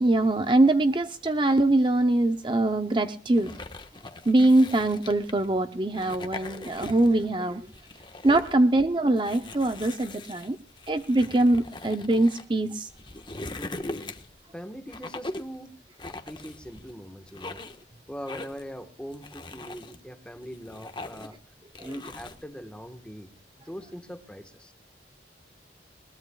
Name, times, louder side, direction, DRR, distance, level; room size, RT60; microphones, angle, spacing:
voice 1, 0.0-3.5 4.3-7.6 8.2-10.6 10.9-12.9, right 2 dB, 25° right, 9 dB, 0.6 m, -23 dB
sound 1, 3.3-5.4 5.9-7.2 7.6-8.6 9.2-12.4 12.9-14.4 14.9-15.5 16.0-16.9 17.3-17.8 18.3-18.7 19.1-20.0 20.4-21.4 21.7-22.4, left 2 dB, 25° left, 1.3 m, -40 dB
voice 2, 13.6-14.2 14.5-15.7 16.3-17.6 18.1-21.3 21.8-23.3 23.6-24.7, equal, 5° left, 7 dB, 1.3 m, -41 dB
21.5 x 19.5 x 2.3 m, 0.41 s
head